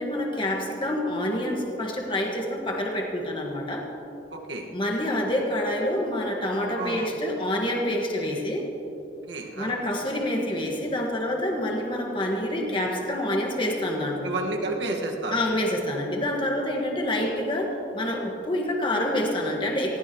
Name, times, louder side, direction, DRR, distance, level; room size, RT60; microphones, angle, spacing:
voice 1, 0.0-3.9 4.7-8.6 9.6-14.3 15.3-20.0, left 1 dB, 30° left, 0 dB, 1.6 m, -27 dB
voice 2, 4.3-4.7 6.8-7.1 9.3-9.8 14.2-15.4, right 2 dB, 75° right, 1 dB, 1.7 m, -31 dB
20.0 x 16.0 x 3.1 m, 3.0 s
head